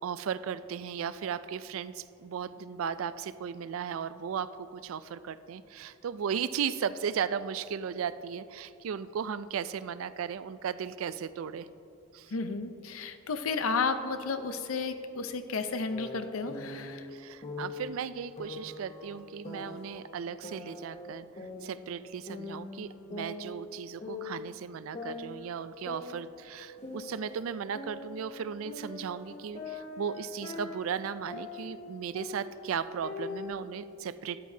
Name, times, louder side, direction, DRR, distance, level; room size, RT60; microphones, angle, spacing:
voice 1, 0.0-11.7 12.1-12.3 17.1-34.4, right 7 dB, 70° right, 15 dB, 0.4 m, -36 dB
voice 2, 12.3-17.1, left 4 dB, 80° left, 9 dB, 0.7 m, -32 dB
sound 1, 15.9-16.9 17.4-17.9 18.4-20.0 20.4-22.0 22.3-23.8 24.0-24.5 24.9-27.4 27.7-31.8 32.1-33.5, left 3 dB, 35° left, 1.1 m, -42 dB
12.5 x 10.0 x 2.7 m, 2.9 s
head